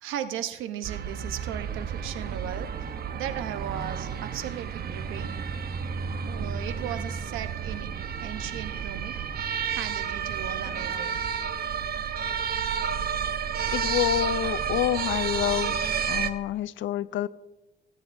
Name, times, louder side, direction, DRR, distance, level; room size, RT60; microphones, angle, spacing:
voice 1, 0.0-2.7 3.1-5.5 6.2-9.2 9.7-11.2, right 10 dB, 90° right, 10 dB, 0.9 m, -36 dB
sound 1, 0.8-16.3, right 7 dB, 50° right, 0.9 m, -31 dB
voice 2, 13.7-15.8 16.1-17.3, left 12 dB, 75° left, 16 dB, 0.5 m, -27 dB
20.5 x 9.6 x 2.6 m, 1.0 s
cardioid pair, 90°, 20 cm